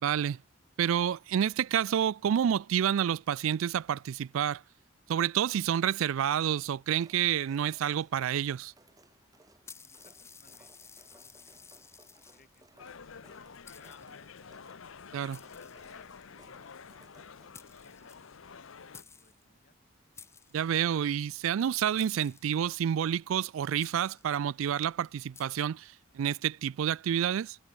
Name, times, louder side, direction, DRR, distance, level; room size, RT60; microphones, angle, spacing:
voice 1, 0.0-0.4 0.8-4.6 5.1-8.7 15.1-15.4 20.5-27.6, right 9 dB, 80° right, 0.3 m, -29 dB
sound 1, 6.4-17.5, right 2 dB, 20° right, 4.3 m, -63 dB
sound 2, 9.6-12.6 13.3-13.4 13.6-14.4 15.3-16.3 17.3-17.4 17.5-18.6 18.9-19.4 20.1-21.0 22.0-22.9 23.8-24.4 25.3-25.4, left 6 dB, 15° left, 0.5 m, -54 dB
voice 2, 9.8-13.5 13.8-14.4 15.3-16.2 16.4-19.8, left 3 dB, 45° left, 6.1 m, -67 dB
sound 3, 12.8-19.0, left 6 dB, 75° left, 0.7 m, -49 dB
head